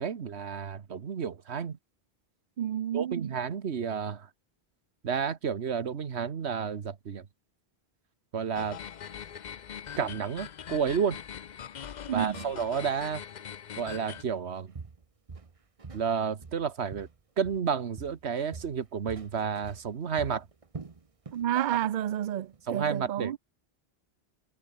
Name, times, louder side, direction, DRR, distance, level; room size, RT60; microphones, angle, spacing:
voice 1, 0.0-1.8 2.9-4.3 5.0-7.3 8.3-8.8 10.0-11.2 12.1-13.2 13.8-14.7 15.9-17.1 17.4-20.5 21.5-21.7 22.7-23.4, right 7 dB, 85° right, 1.5 m, -31 dB
voice 2, 2.6-3.3 12.1-12.4 21.3-23.4, right 11 dB, 55° right, 0.6 m, -30 dB
sound 1, 8.5-14.2, left 8 dB, 50° left, 0.7 m, -42 dB
Walk footsteps, 14.2-14.4 14.7-16.1 16.4-17.7 18.0-21.5 21.8-22.1 22.5-22.6, right 4 dB, 35° right, 1.1 m, -45 dB
omnidirectional pair, 1.1 m